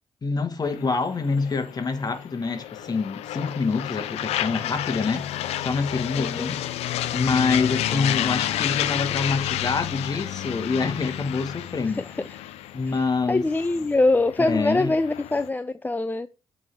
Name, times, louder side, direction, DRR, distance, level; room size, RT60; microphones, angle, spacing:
voice 1, 0.2-5.3 5.6-6.6 7.1-12.0 12.7-13.4 14.5-14.9, left 4 dB, 40° left, 1.4 m, -26 dB
sound 1, 0.6-15.5, left 12 dB, 85° left, 0.5 m, -31 dB
voice 2, 6.2-6.5 11.9-12.4 12.9-16.3, left 2 dB, 15° left, 0.4 m, -24 dB
7.4 x 3.3 x 4.5 m
cardioid pair, 65°, 10 cm